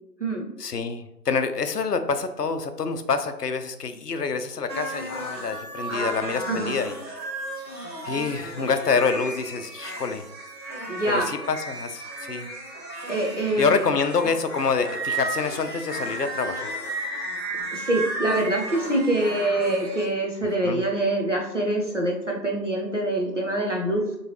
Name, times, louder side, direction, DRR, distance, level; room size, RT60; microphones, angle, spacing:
voice 1, 0.6-6.9 8.0-10.2 11.1-12.5 13.6-16.7 20.6-20.8, left 5 dB, 70° left, 9 dB, 0.5 m, -26 dB
sound 1, 4.7-20.1, right 2 dB, 90° right, 1.4 m, -34 dB
voice 2, 10.9-11.3 13.1-13.8 17.7-24.0, right 1 dB, 50° right, 0 dB, 0.6 m, -25 dB
3.6 x 3.0 x 2.9 m, 0.90 s
figure-of-eight pair, 180°, 49 cm